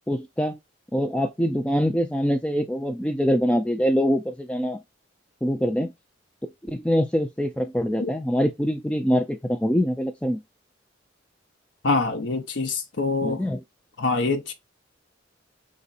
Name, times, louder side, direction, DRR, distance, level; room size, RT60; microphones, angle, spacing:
voice 1, 0.1-0.6 0.9-4.8 5.4-5.9 6.4-10.4 13.2-13.6, equal, 5° left, 0.3 m, -24 dB
voice 2, 11.8-13.4 14.0-14.5, left 3 dB, 70° left, 0.7 m, -25 dB
5.0 x 4.1 x 2.4 m
head